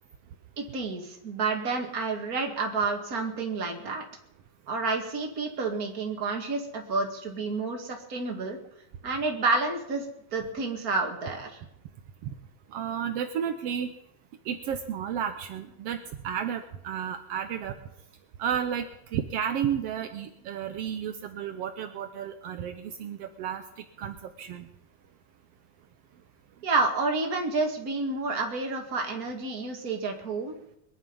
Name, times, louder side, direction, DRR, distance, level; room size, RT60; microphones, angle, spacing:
voice 1, 0.6-4.0 4.7-8.6 9.0-10.1 10.3-11.6 26.6-30.5, right 3 dB, 30° right, 2 dB, 2.0 m, -29 dB
voice 2, 12.7-13.9 14.4-16.0 16.2-17.7 18.4-18.9 19.1-24.7, right 8 dB, 80° right, 7 dB, 1.4 m, -32 dB
22.0 x 11.0 x 5.5 m, 0.77 s
omnidirectional pair, 3.9 m